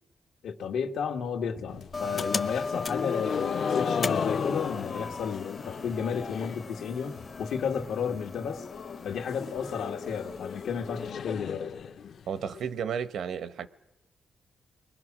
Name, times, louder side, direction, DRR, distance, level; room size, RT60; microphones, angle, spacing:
voice 1, 0.4-8.7 9.0-11.7, left 6 dB, 85° left, 2.1 m, -33 dB
sound 1, 1.7-6.7 7.0-7.5 7.8-7.9 8.2-8.3 8.6-12.6, left 7 dB, 60° left, 0.9 m, -35 dB
sound 2, 1.9-11.1, left 4 dB, 35° left, 0.8 m, -37 dB
voice 2, 12.3-13.7, right 7 dB, 75° right, 1.0 m, -33 dB
30.0 x 22.0 x 6.2 m
cardioid pair, 130°, 0 cm